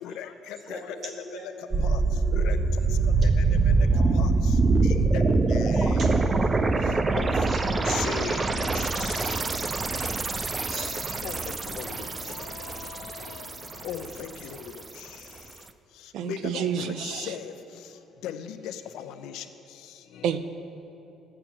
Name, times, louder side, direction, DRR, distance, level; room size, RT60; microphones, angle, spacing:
voice 1, 0.0-1.0 1.8-2.0 2.3-2.6 3.2-3.4 4.1-4.3 4.8-6.0 7.2-7.3 7.9-9.3 11.2-12.0 12.3-13.5 13.8-14.6 16.2-17.5 18.2-19.4, left 9 dB, 80° left, 9 dB, 0.6 m, -37 dB
voice 2, 0.7-3.0 3.8-6.2 7.2-8.3 8.6-8.8 9.3-10.0 10.3-11.2 12.0-12.2, right 1 dB, 30° right, 0 dB, 1.7 m, -42 dB
sound 1, 1.7-14.3 14.5-14.6, right 3 dB, 15° right, 0.4 m, -24 dB
voice 3, 16.1-17.3 20.2-20.4, right 9 dB, 65° right, 10 dB, 0.6 m, -29 dB
13.0 x 8.8 x 6.0 m, 2.8 s
cardioid pair, 180°, 0 cm